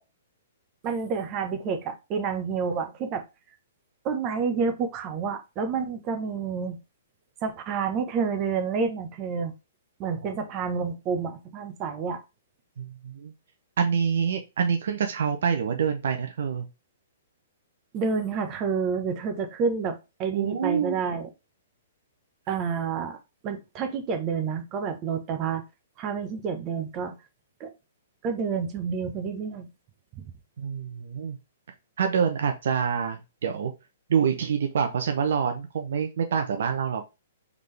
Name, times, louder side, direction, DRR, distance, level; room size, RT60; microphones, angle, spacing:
voice 1, 0.8-3.2 4.0-6.8 7.4-9.5 10.0-12.2 17.9-21.3 22.5-23.2 23.4-25.6 26.0-27.2 27.6-27.7 28.2-29.7 30.1-30.2, right 5 dB, 30° right, 7 dB, 0.9 m, -29 dB
voice 2, 12.8-13.3 13.8-16.7 20.3-21.0 30.6-31.4 32.0-33.7 34.1-37.0, right 7 dB, 70° right, 5 dB, 0.7 m, -26 dB
3.9 x 3.6 x 3.3 m, 0.26 s
hypercardioid pair, 145°, 0 cm